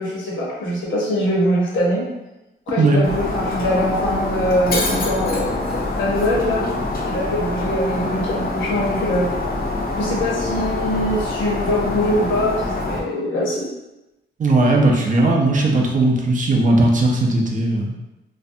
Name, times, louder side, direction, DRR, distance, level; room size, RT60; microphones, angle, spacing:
voice 1, 0.0-2.0 2.7-5.6 6.0-6.7 7.0-9.3 10.0-13.6, equal, 70° left, -5 dB, 0.9 m, -22 dB
Shatter, 3.0-13.0, left 2 dB, 45° left, 0.5 m, -25 dB
voice 2, 14.4-18.0, right 2 dB, 40° right, 0 dB, 0.4 m, -17 dB
2.5 x 2.1 x 2.6 m, 0.98 s
cardioid pair, 115°, 21 cm